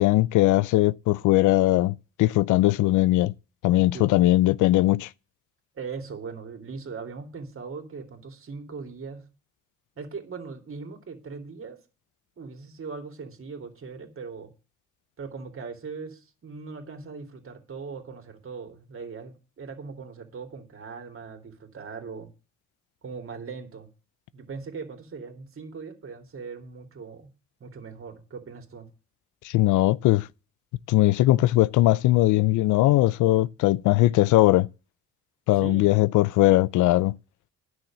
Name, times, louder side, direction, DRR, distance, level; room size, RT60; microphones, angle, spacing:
voice 1, 0.0-3.3 3.6-5.1 29.4-30.3 30.9-34.7 35.5-37.2, left 16 dB, 85° left, 0.5 m, -20 dB
voice 2, 3.8-4.1 5.7-9.3 10.0-11.8 12.4-14.5 15.2-22.3 23.0-23.9 24.3-27.3 27.6-28.9 35.5-35.9, right 5 dB, 45° right, 2.9 m, -39 dB
10.0 x 6.5 x 7.3 m
cardioid pair, 90°, 30 cm